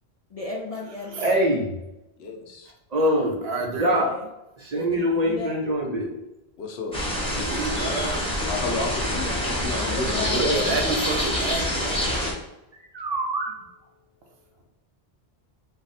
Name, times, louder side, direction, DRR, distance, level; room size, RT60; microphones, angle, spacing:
voice 1, 0.3-1.4 3.7-4.3 4.7-5.5 9.9-11.4, left 3 dB, 55° left, -2 dB, 0.4 m, -35 dB
voice 2, 1.2-1.7 2.9-4.1 4.6-6.1 10.3-10.7 12.7-13.6, equal, 50° right, 0 dB, 0.6 m, -24 dB
voice 3, 2.2-2.7 6.6-7.0 8.5-10.4, left 3 dB, 75° left, 3 dB, 0.9 m, -31 dB
voice 4, 3.4-3.9 7.4-8.2 10.3-12.1, right 3 dB, 75° right, 2 dB, 0.9 m, -30 dB
sound 1, 6.9-12.3, left 1 dB, 5° left, 0.8 m, -26 dB
3.3 x 2.0 x 4.1 m, 0.92 s
omnidirectional pair, 1.1 m